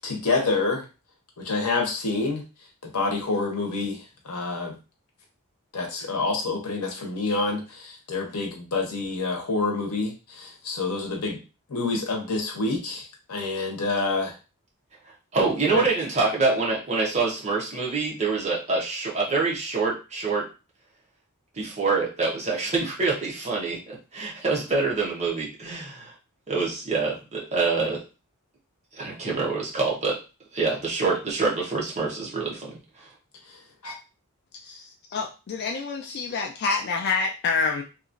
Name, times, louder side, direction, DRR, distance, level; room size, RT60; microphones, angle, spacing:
voice 1, 0.0-0.8 1.4-2.4 2.8-4.7 5.7-11.4 11.7-14.4 15.7-15.9 33.5-33.6 33.8-33.9, left 3 dB, 75° left, 1 dB, 0.9 m, -27 dB
voice 2, 15.3-20.5 21.5-26.1 26.5-28.0 28.9-30.2 30.5-32.8, right 4 dB, 30° right, -3 dB, 0.9 m, -26 dB
voice 3, 34.6-37.8, left 4 dB, 50° left, 2 dB, 0.4 m, -27 dB
2.9 x 2.4 x 2.5 m, 0.31 s
head